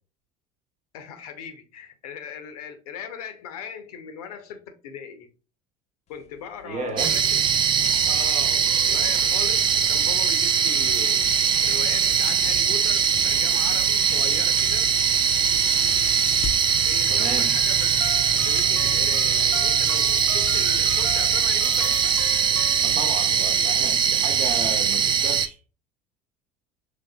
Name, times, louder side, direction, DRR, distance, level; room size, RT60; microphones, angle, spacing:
voice 1, 0.9-5.3 6.1-7.4 8.1-11.2 11.6-14.9 16.8-17.9 18.3-22.1, left 7 dB, 70° left, 0.7 m, -38 dB
sound 1, 6.1-19.4, left 6 dB, 35° left, 0.6 m, -41 dB
voice 2, 6.6-7.2 17.1-17.5 22.8-25.6, right 4 dB, 40° right, 1.0 m, -33 dB
sound 2, 7.0-25.5, right 7 dB, 25° right, 0.3 m, -21 dB
sound 3, 17.2-23.4, equal, 5° right, 1.0 m, -40 dB
5.0 x 3.3 x 2.2 m
hypercardioid pair, 65°, 20 cm